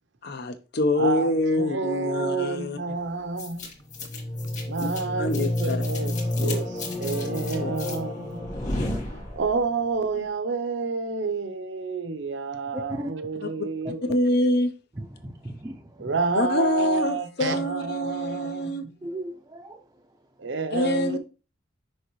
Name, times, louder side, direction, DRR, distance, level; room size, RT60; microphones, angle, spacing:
voice 1, 0.2-2.8 4.8-4.9 5.2-5.8 6.4-6.6 7.6-7.7 13.4-13.5 14.0-14.7 16.3-18.8 20.7-21.2, left 1 dB, 60° left, 0.8 m, -25 dB
voice 2, 1.0-1.3 1.6-3.7 4.6-6.1 6.4-6.7 7.0-8.4 9.1-14.1 16.0-18.7 20.4-21.2, right 4 dB, 75° right, 0.7 m, -29 dB
sound 1, 3.4-9.7, left 1 dB, 40° left, 2.0 m, -30 dB
voice 3, 12.7-13.1 15.2-15.8 19.0-19.8, right 1 dB, 20° right, 0.5 m, -35 dB
6.4 x 5.2 x 3.1 m
head